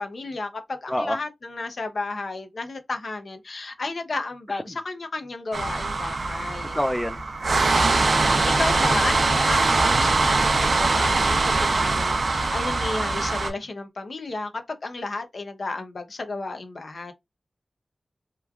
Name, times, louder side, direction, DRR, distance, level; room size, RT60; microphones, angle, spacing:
voice 1, 0.0-6.8 7.9-17.1, left 3 dB, 75° left, 0.6 m, -33 dB
sound 1, 5.5-13.5, right 3 dB, 75° right, 0.5 m, -22 dB
voice 2, 6.8-7.2, equal, 10° left, 0.4 m, -25 dB
3.0 x 2.3 x 2.3 m
cardioid pair, 40°, 0 cm